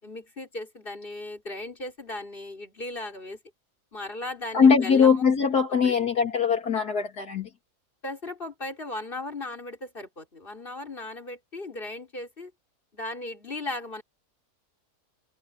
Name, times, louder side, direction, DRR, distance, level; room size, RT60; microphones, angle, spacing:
voice 1, 0.0-3.4 3.9-5.2 5.7-6.0 8.0-12.5 12.9-14.0, left 2 dB, 30° left, 4.8 m, -37 dB
voice 2, 4.5-7.5, left 6 dB, 70° left, 2.8 m, -21 dB
omnidirectional pair, 1.7 m